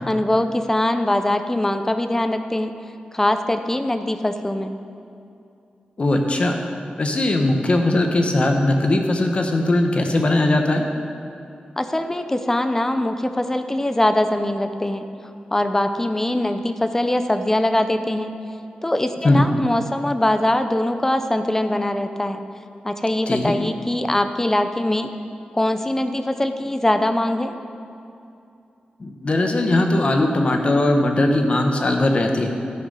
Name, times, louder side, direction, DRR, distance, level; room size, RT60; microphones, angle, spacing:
voice 1, 0.1-2.7 3.1-4.7 11.8-15.0 15.5-18.3 18.8-22.4 22.8-25.1 25.5-27.6, left 1 dB, 15° left, 8 dB, 0.6 m, -22 dB
voice 2, 6.0-6.6 7.0-10.8 19.2-19.4 23.3-23.6 29.0-32.5, left 2 dB, 40° left, 3 dB, 1.0 m, -19 dB
12.0 x 6.4 x 5.5 m, 2.6 s
wide cardioid pair, 110°, 3 cm